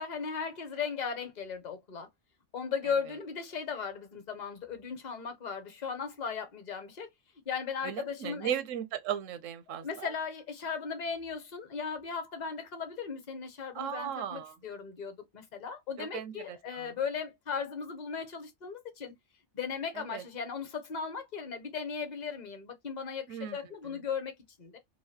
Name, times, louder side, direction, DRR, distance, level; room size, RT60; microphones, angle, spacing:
voice 1, 0.0-2.1 2.5-7.1 7.5-8.5 9.7-19.1 19.5-24.8, left 6 dB, 40° left, 0.7 m, -37 dB
voice 2, 7.8-10.1 13.7-14.5 16.0-16.9 20.0-20.2 23.3-23.6, right 10 dB, 80° right, 0.9 m, -37 dB
3.2 x 2.2 x 2.6 m
omnidirectional pair, 1.3 m